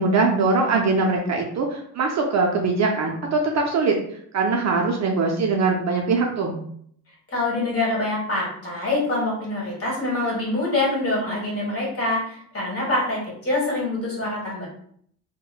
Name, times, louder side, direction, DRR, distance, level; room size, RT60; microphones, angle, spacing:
voice 1, 0.0-4.0 4.3-6.6, right 3 dB, 45° right, 1 dB, 0.4 m, -22 dB
voice 2, 7.3-14.7, left 2 dB, 35° left, -4 dB, 1.4 m, -25 dB
3.0 x 2.1 x 2.3 m, 0.64 s
cardioid pair, 105°, 39 cm